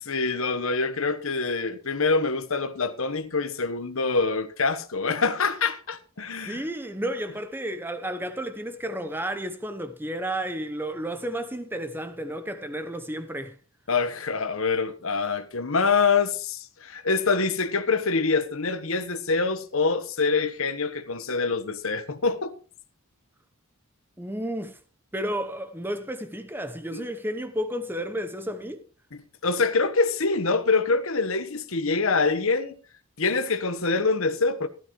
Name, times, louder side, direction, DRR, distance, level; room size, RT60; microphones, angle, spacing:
voice 1, 0.0-6.6 13.9-22.5 26.9-27.0 29.1-32.8 33.2-34.7, left 4 dB, 70° left, 1.2 m, -25 dB
voice 2, 6.4-13.6 24.2-24.8 25.1-28.8, right 1 dB, 10° right, 0.9 m, -32 dB
16.0 x 13.0 x 3.2 m
head